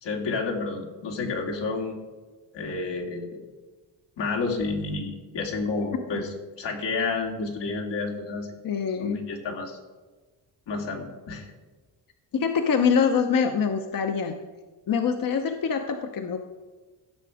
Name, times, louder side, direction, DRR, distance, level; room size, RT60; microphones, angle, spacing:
voice 1, 0.0-2.0 2.5-3.4 4.2-8.5 9.0-9.8 10.7-11.5, left 3 dB, 85° left, 0 dB, 2.5 m, -30 dB
voice 2, 8.6-9.3 12.3-14.4 14.9-16.4, left 6 dB, 55° left, 5 dB, 0.9 m, -24 dB
15.5 x 6.8 x 5.0 m, 1.3 s
cardioid pair, 95°, 41 cm